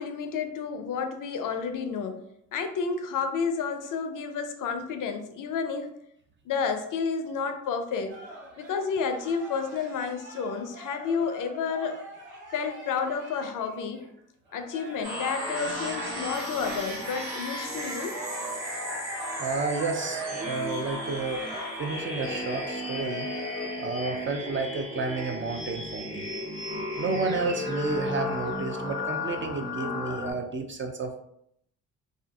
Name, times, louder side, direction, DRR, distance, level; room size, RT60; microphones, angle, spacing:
voice 1, 0.0-2.2 2.5-5.9 6.5-8.2 8.6-12.0 12.5-14.1 14.5-18.2, left 5 dB, 50° left, 7 dB, 0.5 m, -30 dB
sound 1, 8.1-14.1 14.4-23.7, right 1 dB, 60° right, 1.2 m, -45 dB
sound 2, 15.0-30.3, left 1 dB, 85° right, 1.2 m, -34 dB
voice 2, 15.6-16.4 19.4-21.5 21.8-23.5 23.8-26.3 27.0-31.2, right 3 dB, 30° right, 4 dB, 0.4 m, -31 dB
2.5 x 2.4 x 2.3 m, 0.74 s
hypercardioid pair, 45°, 40 cm